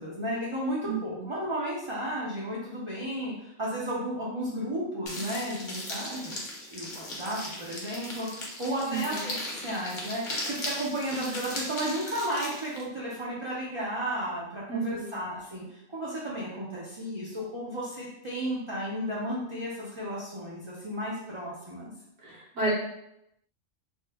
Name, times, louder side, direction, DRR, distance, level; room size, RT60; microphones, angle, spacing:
voice 1, 0.0-6.4 6.7-21.9, equal, 45° right, -7 dB, 0.4 m, -33 dB
voice 2, 0.8-1.3 8.9-9.2 14.7-15.2 22.2-22.7, right 4 dB, 75° right, -6 dB, 1.3 m, -32 dB
sound 1, 5.1-12.8, left 1 dB, 50° left, 0.7 m, -37 dB
2.9 x 2.1 x 3.3 m, 0.80 s
omnidirectional pair, 1.3 m